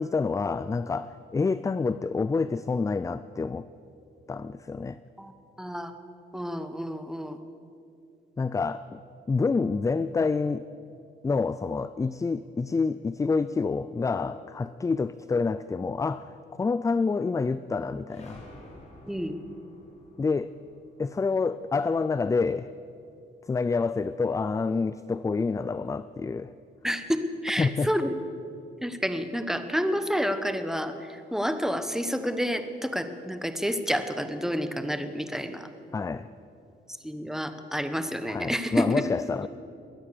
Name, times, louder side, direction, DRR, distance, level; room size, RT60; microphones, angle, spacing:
voice 1, 0.0-3.7 4.3-5.0 8.4-9.0 9.3-10.6 11.2-18.4 20.2-20.5 21.0-22.7 23.5-26.5 27.6-27.9 35.9-36.3 38.3-39.5, left 4 dB, 15° left, 14 dB, 0.3 m, -27 dB
voice 2, 5.6-5.9 6.3-7.4 19.1-19.3 26.8-28.1 28.8-35.7 37.0-39.0, equal, ahead, 9 dB, 1.1 m, -29 dB
sound 1, 18.1-22.5, left 1 dB, 35° left, 3.5 m, -51 dB
21.5 x 9.2 x 6.7 m, 2.6 s
cardioid pair, 90°, 20 cm